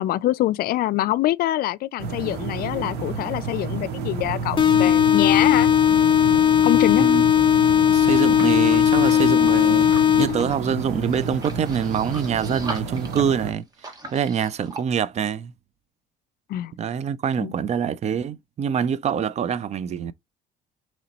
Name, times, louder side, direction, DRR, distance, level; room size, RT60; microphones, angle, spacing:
voice 1, 0.0-5.7 6.6-7.1 16.5-16.7 17.4-17.5, left 15 dB, 65° left, 0.4 m, -24 dB
sound 1, 2.0-13.5, right 5 dB, 80° right, 1.2 m, -31 dB
sound 2, 4.6-10.6, left 9 dB, 30° left, 0.6 m, -17 dB
voice 2, 6.9-7.2 7.9-9.9 10.2-15.5 16.8-20.1, right 8 dB, 40° right, 0.4 m, -25 dB
sound 3, 8.0-14.8, right 2 dB, 20° right, 1.5 m, -40 dB
5.1 x 3.0 x 2.9 m
cardioid pair, 110°, 17 cm